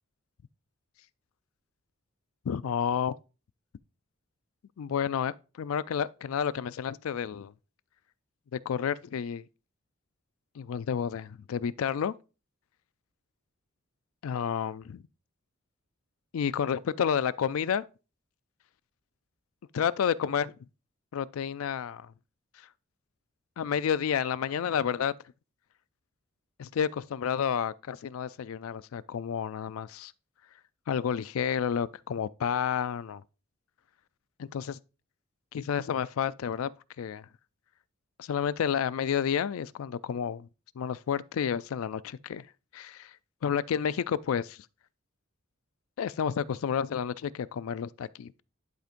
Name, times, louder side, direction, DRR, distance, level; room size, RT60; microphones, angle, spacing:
voice 1, 2.5-3.1 4.8-7.5 8.5-9.4 10.6-12.1 14.2-15.0 16.3-17.8 19.7-20.5 21.1-22.1 23.6-25.1 26.6-30.1 30.9-33.2 34.4-34.8 35.5-36.7 37.0-37.3 38.2-40.5 40.8-42.5 42.7-43.1 43.4-44.6 46.0-48.4, left 7 dB, 90° left, 0.4 m, -30 dB
10.5 x 5.1 x 2.5 m
head